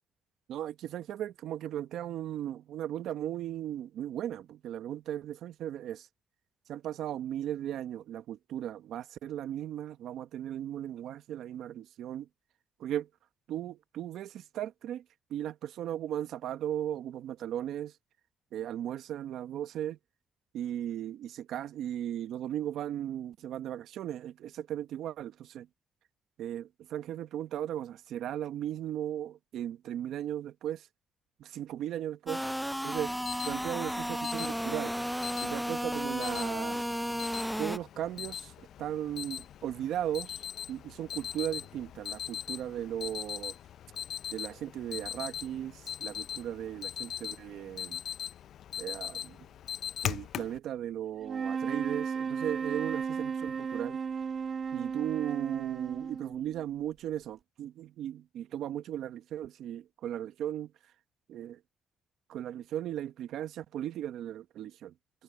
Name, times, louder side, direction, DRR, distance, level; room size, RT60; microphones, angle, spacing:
voice 1, 0.5-6.1 6.7-12.3 12.8-13.1 13.5-15.0 15.3-17.9 18.5-20.0 20.5-25.7 26.4-30.8 31.4-32.4 32.8-33.1 33.4-34.9 35.4-36.8 37.6-38.5 38.8-40.3 40.7-43.5 44.3-48.0 48.8-49.3 50.0-54.0 54.7-60.7 61.3-61.6 62.3-64.9, right 11 dB, 80° right, 1.1 m, -36 dB
sound 1, 32.3-37.8, equal, ahead, 0.4 m, -33 dB
Alarm, 33.0-50.6, left 10 dB, 70° left, 0.5 m, -41 dB
sound 2, 51.2-56.7, right 6 dB, 45° right, 1.9 m, -35 dB
cardioid pair, 90°, 0 cm